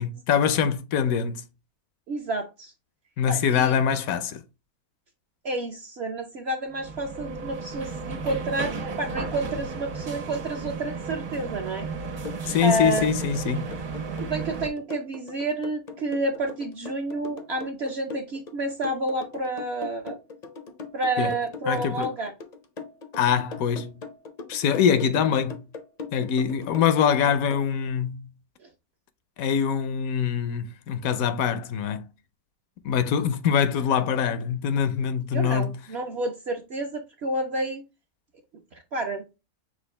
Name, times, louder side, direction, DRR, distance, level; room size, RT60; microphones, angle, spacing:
voice 1, 0.0-1.5 3.2-4.4 12.5-13.7 21.2-21.3 21.7-22.1 23.1-24.0 24.5-25.6 26.1-28.3 29.4-32.1 32.8-35.8, left 8 dB, 75° left, 1.0 m, -24 dB
voice 2, 2.1-2.7 3.3-3.8 5.4-11.9 12.6-13.2 14.2-20.2 20.9-22.3 28.6-28.7 35.3-37.8 38.7-39.2, right 2 dB, 55° right, 0.8 m, -29 dB
sound 1, 6.7-14.7, right 4 dB, 90° right, 1.7 m, -34 dB
sound 2, 12.2-27.6, left 4 dB, 45° left, 0.5 m, -39 dB
6.2 x 2.4 x 3.2 m
omnidirectional pair, 1.6 m